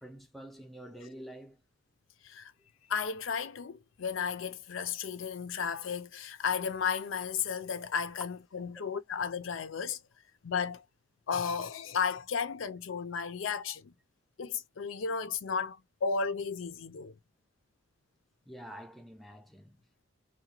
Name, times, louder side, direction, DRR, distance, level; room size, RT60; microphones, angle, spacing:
voice 1, 0.0-1.6 18.5-20.0, equal, ahead, 0.3 m, -48 dB
voice 2, 2.9-10.0 10.4-10.8 11.3-13.9 14.4-17.1, left 6 dB, 75° left, 0.5 m, -34 dB
2.8 x 2.2 x 2.8 m
head